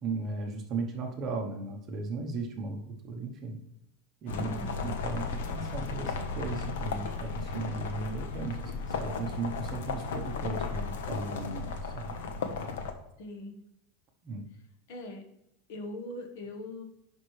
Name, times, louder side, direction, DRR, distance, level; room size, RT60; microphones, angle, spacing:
voice 1, 0.0-3.6 4.2-12.2 14.2-14.5, right 3 dB, 25° right, 2 dB, 0.9 m, -36 dB
sound 1, 4.3-12.9, left 4 dB, 85° left, 1.0 m, -35 dB
voice 2, 4.4-4.9 13.2-13.6 14.9-15.3 15.7-16.8, left 2 dB, 50° left, 5 dB, 1.2 m, -41 dB
10.5 x 5.3 x 3.2 m, 0.81 s
supercardioid pair, 180°, 0 cm